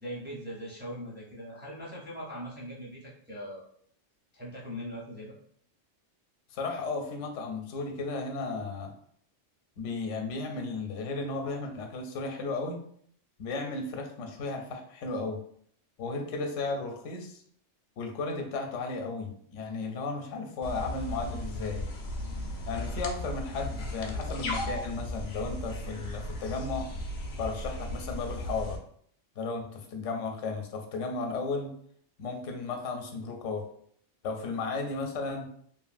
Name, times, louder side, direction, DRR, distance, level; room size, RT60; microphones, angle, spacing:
voice 1, 0.0-3.6 4.3-5.4, equal, 10° right, -6 dB, 0.6 m, -40 dB
voice 2, 6.5-8.9 9.8-12.8 13.4-15.4 16.0-17.4 18.0-21.8 22.7-26.9 27.4-28.8 29.4-31.7 32.2-33.7 34.2-35.5, left 3 dB, 90° left, 3 dB, 0.9 m, -34 dB
sound 1, 20.6-28.8, left 1 dB, 60° left, 0.5 m, -36 dB
2.9 x 2.5 x 2.5 m, 0.63 s
omnidirectional pair, 1.2 m